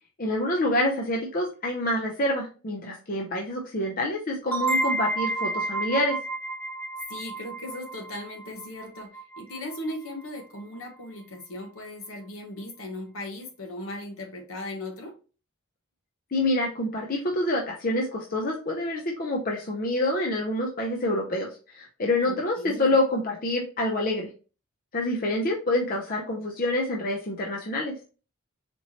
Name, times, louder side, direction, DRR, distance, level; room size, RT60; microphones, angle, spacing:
voice 1, 0.2-6.2 16.3-24.3 24.9-28.0, left 1 dB, 40° left, 0 dB, 0.6 m, -27 dB
sound 1, 4.5-9.9, right 2 dB, 10° left, 1.0 m, -31 dB
voice 2, 7.1-15.1 22.3-22.9, left 1 dB, 70° left, 3 dB, 1.1 m, -38 dB
4.3 x 3.0 x 2.8 m, 0.35 s
head